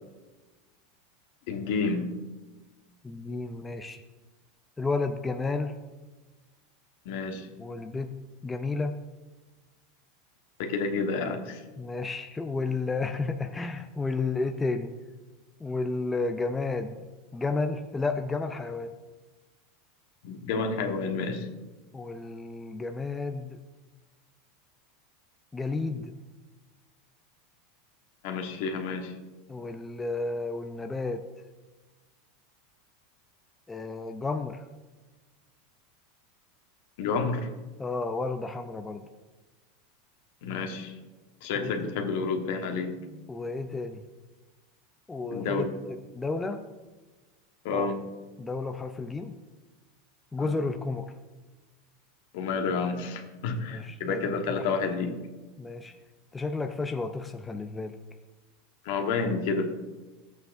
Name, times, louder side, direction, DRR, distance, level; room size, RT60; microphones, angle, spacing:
voice 1, 1.5-2.1 7.0-7.5 10.6-11.6 20.2-21.5 28.2-29.1 37.0-37.5 40.4-40.9 41.4-43.0 45.3-45.8 47.6-48.1 50.4-50.6 52.3-55.2 58.8-59.7, left 4 dB, 70° left, 4 dB, 1.3 m, -30 dB
voice 2, 3.0-4.0 4.8-5.8 7.6-8.1 8.4-9.0 11.8-15.0 15.6-17.0 17.3-18.9 21.9-23.6 25.5-26.1 29.5-31.2 33.7-34.6 37.8-39.1 41.5-41.9 43.3-44.0 45.1-45.7 46.1-46.6 47.7-47.9 48.4-49.3 50.3-51.1 53.7-54.7 55.6-55.9 56.3-57.9, left 3 dB, 10° left, 6 dB, 0.5 m, -32 dB
13.0 x 8.2 x 2.6 m, 1.2 s
supercardioid pair, 130°, 0 cm